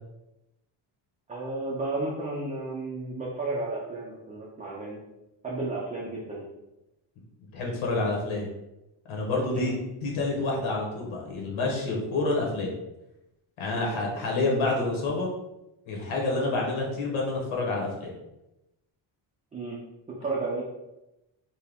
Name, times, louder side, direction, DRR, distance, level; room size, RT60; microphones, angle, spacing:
voice 1, 1.3-5.0 5.4-6.5 9.5-9.7 13.7-14.0 19.5-19.8 20.2-20.6, right 2 dB, 15° right, -4 dB, 0.5 m, -33 dB
voice 2, 7.5-8.5 9.1-12.7 13.6-15.3 15.9-18.1, left 2 dB, 75° left, -2 dB, 1.3 m, -28 dB
4.5 x 2.2 x 3.5 m, 0.93 s
cardioid pair, 135°, 48 cm